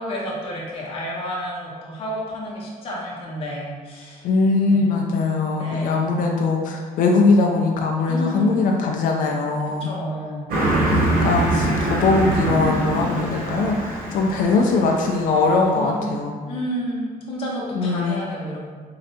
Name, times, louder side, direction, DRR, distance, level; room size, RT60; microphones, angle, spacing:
voice 1, 0.0-4.2 4.7-5.0 5.6-6.0 8.1-8.7 9.8-10.5 15.7-18.6, equal, 40° left, -4 dB, 0.8 m, -30 dB
voice 2, 4.2-9.9 10.9-16.4 17.7-18.2, left 3 dB, 65° left, 1 dB, 0.4 m, -21 dB
Car passing by, 10.5-15.5, right 1 dB, 75° right, 0.8 m, -23 dB
3.8 x 3.2 x 2.7 m, 1.6 s
cardioid pair, 170°, 15 cm